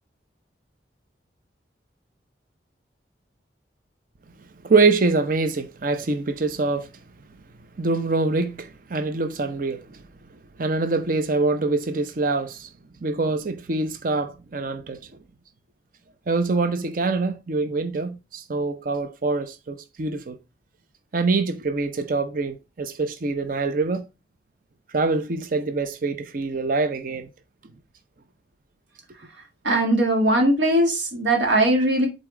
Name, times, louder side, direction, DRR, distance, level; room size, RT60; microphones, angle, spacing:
voice 1, 4.6-6.9 7.8-10.0 10.6-12.7 13.0-15.0 16.3-20.4 21.1-24.1 24.9-27.3, right 3 dB, 50° right, 0.6 m, -24 dB
voice 2, 29.6-32.1, right 1 dB, 90° right, 1.8 m, -20 dB
8.0 x 4.1 x 3.7 m
head